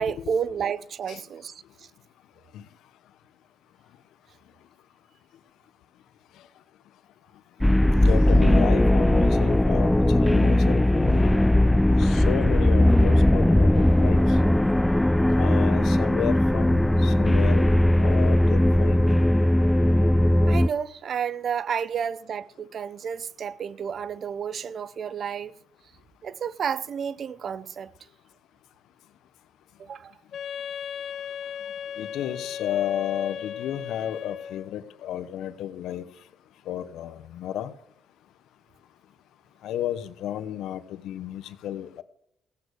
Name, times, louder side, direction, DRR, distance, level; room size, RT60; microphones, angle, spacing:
voice 1, 0.0-1.5 20.5-25.5 26.2-27.9 29.8-30.1, right 7 dB, 55° right, 0.6 m, -31 dB
sound 1, 7.6-20.7, left 1 dB, 10° left, 0.4 m, -19 dB
voice 2, 8.0-11.5 12.0-14.2 15.4-17.6 18.0-19.0 32.0-36.0 36.7-37.7 39.6-42.0, left 11 dB, 85° left, 1.0 m, -32 dB
Wind instrument woodwind instrument, 30.3-34.8, left 8 dB, 65° left, 0.6 m, -36 dB
16.5 x 8.2 x 6.4 m
cardioid pair, 90°, 0 cm